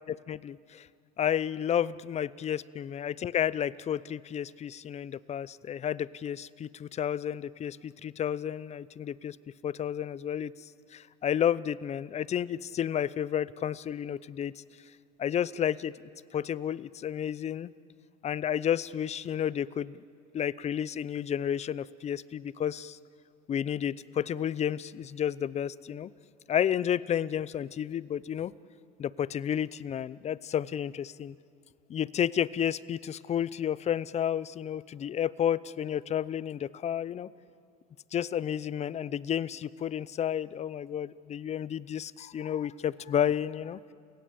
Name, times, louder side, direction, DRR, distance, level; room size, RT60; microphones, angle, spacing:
voice 1, 0.1-0.9 1.2-9.4 9.6-14.6 15.2-15.9 16.3-17.7 18.2-20.0 20.3-23.0 23.5-26.1 26.5-28.5 29.0-31.4 31.9-37.3 38.1-43.8, left 9 dB, 35° left, 20 dB, 0.7 m, -31 dB
30.0 x 17.5 x 8.6 m, 2.4 s
supercardioid pair, 90°, 19 cm